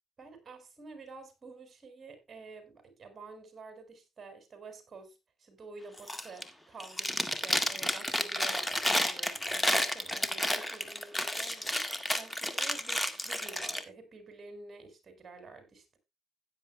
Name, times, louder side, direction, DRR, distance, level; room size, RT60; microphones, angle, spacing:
voice 1, 0.2-16.0, right 4 dB, 35° right, 5.4 m, -49 dB
Chewing mastication, 6.0-6.5 6.8-13.8, left 1 dB, 10° left, 1.8 m, -31 dB
16.5 x 10.0 x 2.2 m
cardioid pair, 90°, 0 cm